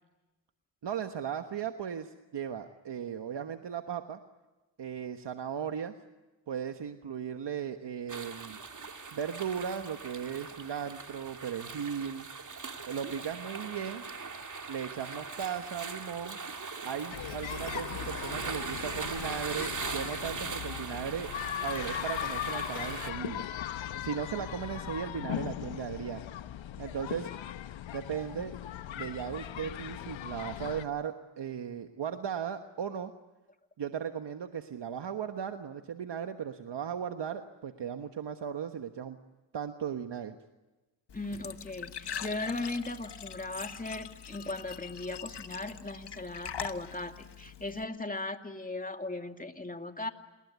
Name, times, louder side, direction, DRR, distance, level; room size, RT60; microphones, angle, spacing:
voice 1, 0.8-4.2 4.8-5.9 6.5-8.6 9.1-12.3 12.9-14.0 14.7-16.4 16.8-23.4 24.0-26.2 26.8-27.3 27.9-28.5 28.9-33.1 33.8-39.2 39.5-40.3, right 8 dB, 65° right, 7 dB, 1.4 m, -37 dB
sound 1, 8.1-23.1, right 4 dB, 40° right, 2.7 m, -40 dB
sound 2, 17.1-30.9, left 11 dB, 85° left, 1.1 m, -39 dB
Glass / Trickle dribble / Fill (with liquid), 41.1-47.8, left 8 dB, 60° left, 1.5 m, -43 dB
voice 2, 41.1-50.1, left 2 dB, 20° left, 6 dB, 2.4 m, -38 dB
28.0 x 21.0 x 9.6 m, 1.1 s
cardioid pair, 60°, 45 cm